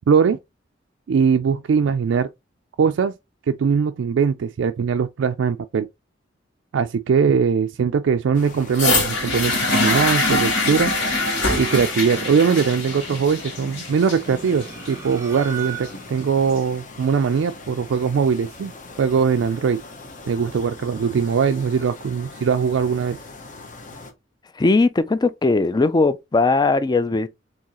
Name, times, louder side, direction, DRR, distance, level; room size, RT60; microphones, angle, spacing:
voice 1, 0.1-0.4 1.1-2.3 2.8-3.1 3.5-5.9 6.7-10.9 11.6-18.7 19.0-19.8 20.3-23.2, right 6 dB, 70° right, 0.3 m, -21 dB
sound 1, 8.3-24.1, left 3 dB, 45° left, 0.9 m, -41 dB
sound 2, 8.7-16.7 17.6-17.7, left 2 dB, 80° left, 2.0 m, -24 dB
sound 3, 10.7-12.3 14.2-16.2, right 5 dB, 15° right, 0.8 m, -37 dB
voice 2, 24.6-27.3, left 3 dB, 20° left, 0.4 m, -19 dB
4.6 x 3.2 x 3.0 m
head